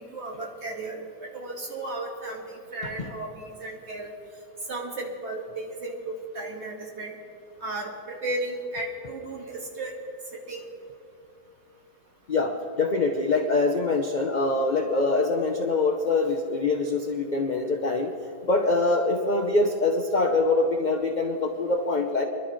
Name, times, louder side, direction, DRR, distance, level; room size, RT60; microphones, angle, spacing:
voice 1, 0.0-4.1 4.7-7.2 7.6-9.9 10.3-10.7, right 2 dB, 40° right, -1 dB, 2.0 m, -35 dB
voice 2, 12.3-18.1 18.4-22.2, left 3 dB, 50° left, 2 dB, 0.5 m, -24 dB
25.5 x 12.0 x 3.2 m, 2.5 s
omnidirectional pair, 1.9 m